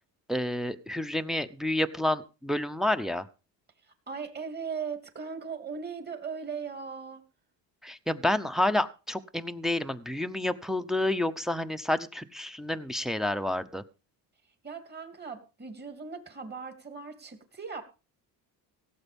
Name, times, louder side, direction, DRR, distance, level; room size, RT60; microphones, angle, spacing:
voice 1, 0.3-3.3 7.8-13.8, left 1 dB, ahead, 8 dB, 0.8 m, -29 dB
voice 2, 4.1-7.2 14.6-17.8, right 5 dB, 25° right, 6 dB, 2.9 m, -38 dB
17.0 x 8.2 x 5.3 m, 0.33 s
cardioid pair, 135°, 41 cm